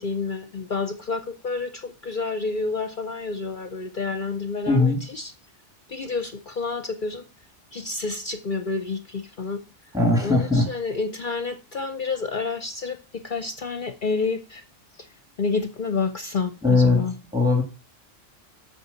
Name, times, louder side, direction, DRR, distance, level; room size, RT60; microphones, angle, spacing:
voice 1, 0.0-5.3 5.9-7.2 7.7-9.6 10.2-14.6 15.4-17.1, left 4 dB, 50° left, 0.8 m, -29 dB
voice 2, 4.7-5.0 9.9-10.7 16.6-17.6, left 3 dB, 5° right, 2.3 m, -20 dB
8.1 x 5.4 x 7.0 m
omnidirectional pair, 1.2 m